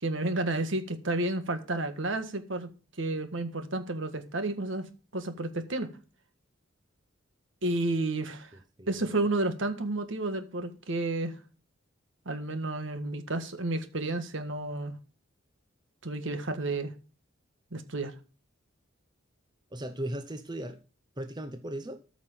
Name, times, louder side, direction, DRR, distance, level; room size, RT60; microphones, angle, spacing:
voice 1, 0.0-2.7 3.0-4.9 5.1-5.9 7.6-8.5 8.9-11.4 12.2-15.0 16.0-16.9 17.7-18.1, right 2 dB, 65° right, 1.7 m, -31 dB
voice 2, 8.5-9.1 19.7-20.8 21.2-22.0, right 1 dB, 20° right, 0.9 m, -37 dB
13.5 x 6.1 x 5.7 m
head